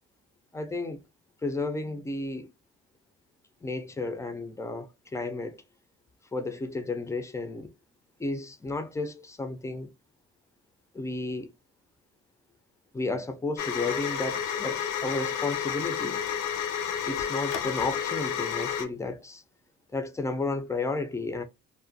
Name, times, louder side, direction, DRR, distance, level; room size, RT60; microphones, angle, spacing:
voice 1, 0.5-1.0 1.4-2.5 3.6-5.6 6.3-7.7 8.2-9.9 10.9-11.5 12.9-16.2 17.1-19.4 19.9-21.4, left 3 dB, 10° left, 0.3 m, -32 dB
sound 1, 13.6-18.8, left 8 dB, 85° left, 0.5 m, -31 dB
2.4 x 2.1 x 2.6 m
cardioid pair, 85°, 31 cm